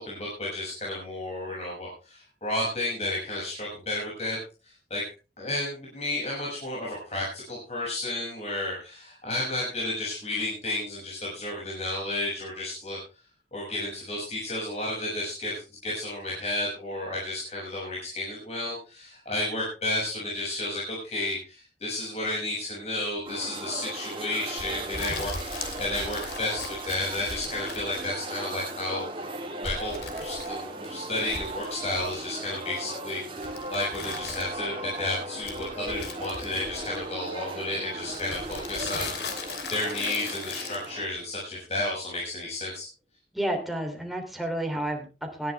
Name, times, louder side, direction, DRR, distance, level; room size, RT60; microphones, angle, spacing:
voice 1, 0.0-4.4 4.6-5.0 5.4-13.0 13.5-29.0 29.6-42.9, left 2 dB, 35° left, -4 dB, 6.7 m, -32 dB
sound 1, 23.2-41.1, right 2 dB, 30° right, 3.1 m, -37 dB
sound 2, 24.6-28.2 29.6-30.8 31.2-32.3 33.4-34.7 35.4-37.2 38.1-40.8, left 4 dB, 75° left, 3.0 m, -39 dB
voice 2, 43.3-45.5, right 1 dB, ahead, 2 dB, 2.9 m, -31 dB
18.5 x 13.0 x 3.5 m, 0.32 s
head